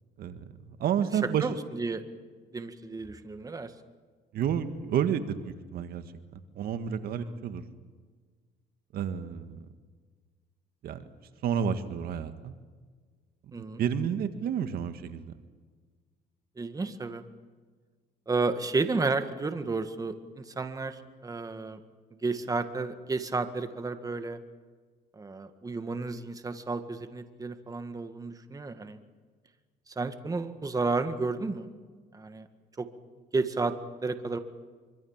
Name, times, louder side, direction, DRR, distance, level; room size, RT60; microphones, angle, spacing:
voice 1, 0.2-1.5 4.3-6.0 6.3-7.6 8.9-9.7 10.8-11.0 11.4-12.6 13.5-15.3, right 8 dB, 65° right, 9 dB, 1.8 m, -30 dB
voice 2, 1.4-2.0 2.5-3.7 7.2-7.4 13.5-13.8 16.6-17.2 18.3-21.8 22.2-24.4 25.1-29.0 29.9-31.7 32.1-32.5 32.8-32.9 33.3-33.7 34.0-34.4, right 3 dB, 20° right, 8 dB, 1.9 m, -32 dB
25.5 x 25.0 x 7.4 m, 1.5 s
cardioid pair, 110°, 17 cm